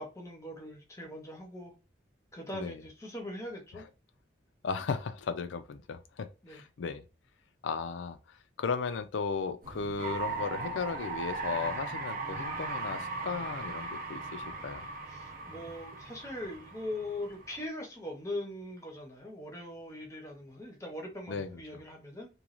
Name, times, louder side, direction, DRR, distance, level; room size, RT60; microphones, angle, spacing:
voice 1, 0.0-1.7 2.3-3.8 6.4-6.6 15.1-22.3, left 1 dB, 15° left, 0.7 m, -41 dB
voice 2, 4.6-7.0 7.6-14.9 21.3-21.6, left 5 dB, 75° left, 0.4 m, -36 dB
sound 1, 9.6-17.6, right 3 dB, 45° right, 0.5 m, -38 dB
3.0 x 2.3 x 2.4 m
head